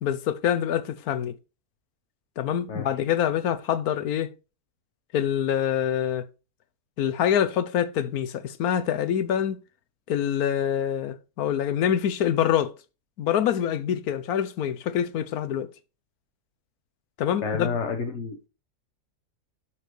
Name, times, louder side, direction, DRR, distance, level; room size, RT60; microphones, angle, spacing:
voice 1, 0.0-1.3 2.4-4.3 5.1-6.2 7.0-9.6 10.1-12.7 13.2-15.7 17.2-17.7, left 9 dB, 70° left, 1.2 m, -25 dB
voice 2, 17.4-18.4, left 5 dB, 50° left, 1.3 m, -29 dB
12.5 x 4.6 x 3.2 m
omnidirectional pair, 1.8 m